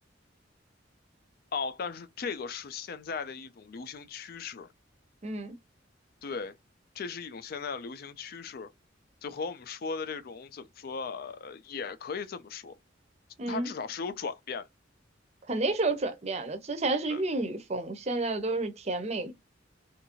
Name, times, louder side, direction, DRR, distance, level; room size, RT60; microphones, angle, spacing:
voice 1, 1.5-4.7 6.2-6.6 6.9-8.7 9.2-12.8 13.5-14.7 17.1-17.2, left 5 dB, 50° left, 0.4 m, -37 dB
voice 2, 5.2-5.5 13.4-13.7 15.5-19.3, right 2 dB, 35° right, 0.6 m, -30 dB
2.7 x 2.5 x 2.8 m
head